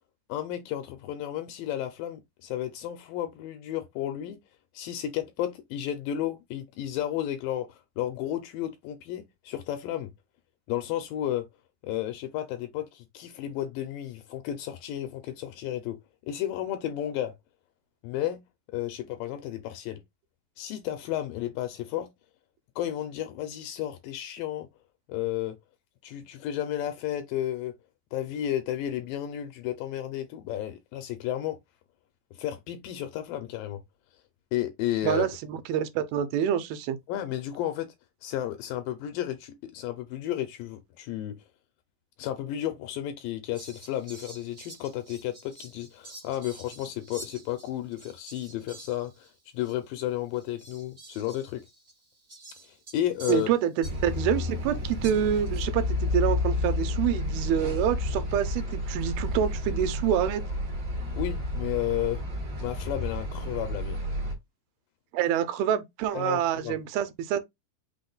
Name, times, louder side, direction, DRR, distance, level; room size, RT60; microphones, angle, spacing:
voice 1, 0.3-4.4 4.7-10.1 10.7-11.5 11.8-16.0 16.3-17.3 18.0-18.4 18.7-20.0 20.6-22.1 22.8-24.7 25.1-25.6 26.0-27.7 28.1-31.6 32.3-33.8 34.5-35.3 37.1-37.9 38.2-41.4 42.2-49.3 49.5-51.6 52.6-53.5 61.1-62.2 62.6-64.0 66.1-66.8, left 12 dB, 80° left, 2.2 m, -32 dB
voice 2, 35.0-37.0 53.3-60.4 65.1-67.4, right 9 dB, 85° right, 2.5 m, -27 dB
Fowl, 43.5-49.3 49.6-49.7 50.3-54.3 55.0-55.7, right 2 dB, 30° right, 1.0 m, -48 dB
sound 1, 53.8-64.3, left 2 dB, 65° right, 1.1 m, -31 dB
5.8 x 2.1 x 3.8 m
omnidirectional pair, 4.3 m